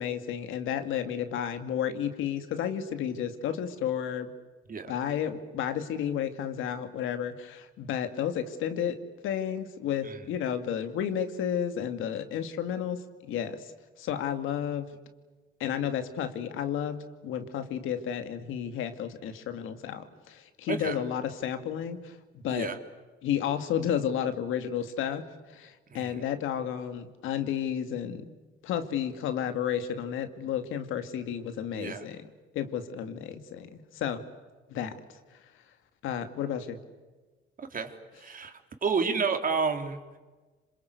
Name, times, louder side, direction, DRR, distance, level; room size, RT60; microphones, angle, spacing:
voice 1, 0.0-4.3 4.9-9.0 9.2-13.7 14.0-14.9 15.6-22.1 22.4-22.7 23.2-25.2 25.5-28.3 28.6-32.3 32.5-34.2 34.7-35.0 36.0-36.8, left 9 dB, 90° left, 8 dB, 2.4 m, -32 dB
voice 2, 20.7-21.0 22.5-22.8 25.9-26.2 31.7-32.1 37.7-38.5 38.8-40.2, right 5 dB, 45° right, 5 dB, 3.4 m, -30 dB
27.0 x 26.0 x 8.3 m, 1.3 s
cardioid pair, 90°, 20 cm